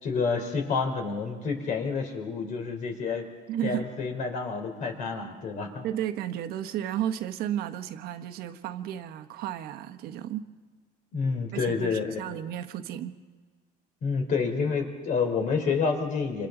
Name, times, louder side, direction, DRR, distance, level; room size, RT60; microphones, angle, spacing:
voice 1, 0.0-3.3 3.6-5.9 11.1-12.3 14.0-16.5, left 5 dB, 50° left, 3.7 m, -29 dB
voice 2, 3.5-3.9 5.8-10.5 11.5-13.2, right 11 dB, 65° right, 1.3 m, -33 dB
27.0 x 26.0 x 3.9 m
cardioid pair, 145°, 17 cm